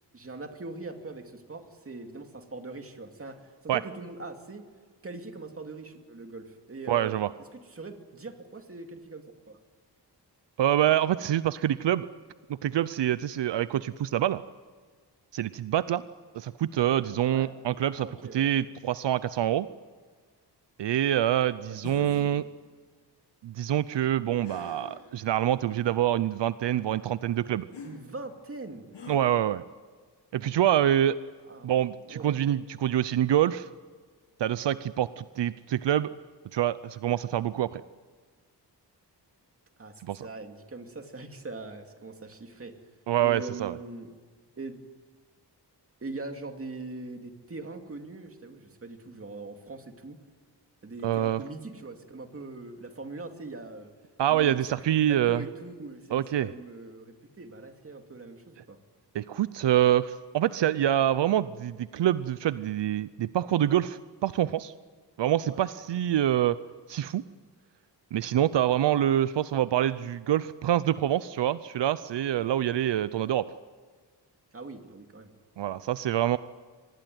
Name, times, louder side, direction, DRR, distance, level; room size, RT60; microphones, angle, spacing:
voice 1, 0.1-4.7 5.0-9.6 17.3-17.5 18.0-18.5 21.6-22.2 27.8-28.9 31.5-31.7 32.0-32.5 39.8-42.9 43.2-44.1 44.6-44.8 46.0-50.2 50.8-53.9 54.3-58.8 65.4-65.7 74.5-75.3, right 3 dB, 30° right, 5 dB, 2.5 m, -42 dB
voice 2, 6.9-7.3 10.6-12.1 12.6-14.4 15.3-16.0 16.3-18.1 18.3-19.7 20.8-22.4 23.4-27.7 29.1-29.6 30.3-31.2 31.6-33.7 34.4-36.1 36.5-37.8 40.0-40.3 43.1-43.7 51.0-51.4 54.2-55.4 56.1-56.5 59.1-64.7 65.2-66.6 66.9-67.2 68.1-73.5 75.6-76.4, right 11 dB, 80° right, 15 dB, 0.7 m, -26 dB
sound 1, 21.8-22.3 24.4-25.1 25.8-25.9 27.7-27.9 28.9-29.2, left 4 dB, 90° left, 7.8 m, -43 dB
25.0 x 19.5 x 9.3 m, 1.5 s
wide cardioid pair, 125°, 42 cm